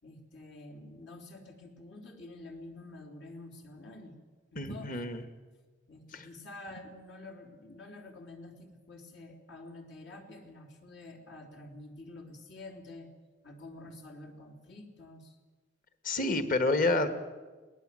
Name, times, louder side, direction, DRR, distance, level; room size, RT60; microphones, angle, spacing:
voice 1, 0.0-4.1 4.5-5.0 5.9-13.1 13.4-15.4, left 2 dB, 75° left, 0 dB, 3.5 m, -48 dB
voice 2, 4.6-5.2 6.1-6.3 16.0-17.1, left 2 dB, 50° left, 9 dB, 1.7 m, -28 dB
23.0 x 18.5 x 7.7 m, 1.3 s
head